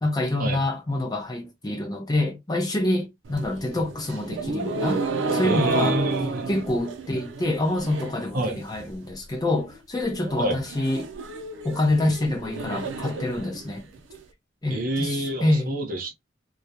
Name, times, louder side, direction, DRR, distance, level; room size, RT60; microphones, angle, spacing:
voice 1, 0.0-5.0 5.3-6.0 6.5-11.1 11.6-13.8 14.6-15.8, left 1 dB, 20° left, 0.5 m, -26 dB
sound 1, 3.2-8.3 8.6-9.1 9.4-9.5 9.8-9.9 10.2-14.2, right 3 dB, 85° right, 0.5 m, -31 dB
voice 2, 5.4-6.5 8.3-8.6 10.4-10.6 14.7-16.1, right 1 dB, 50° right, 0.7 m, -27 dB
2.3 x 2.0 x 2.7 m
head